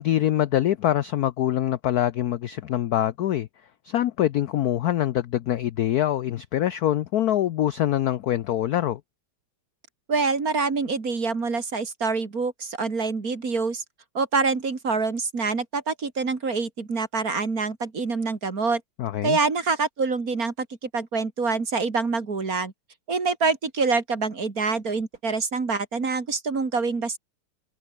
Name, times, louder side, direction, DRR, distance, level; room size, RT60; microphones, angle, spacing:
voice 1, 0.0-3.5 3.8-9.0 19.0-19.4, left 12 dB, 75° left, 0.8 m, -24 dB
voice 2, 10.1-13.8 14.1-18.8 19.2-22.7 23.1-27.2, right 4 dB, 40° right, 3.0 m, -26 dB
omnidirectional pair, 2.4 m